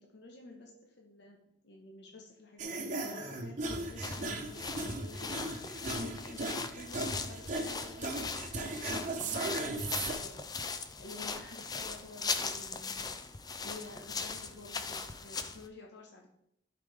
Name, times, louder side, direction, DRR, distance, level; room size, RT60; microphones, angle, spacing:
voice 1, 0.0-1.4 1.6-8.3 9.3-13.1 13.6-16.3, left 2 dB, 60° left, 0 dB, 1.3 m, -51 dB
sound 1, 2.6-10.1, right 2 dB, 40° right, 1.1 m, -37 dB
sound 2, 3.8-15.7, left 4 dB, 20° left, 0.4 m, -39 dB
11.5 x 5.0 x 3.5 m, 0.76 s
head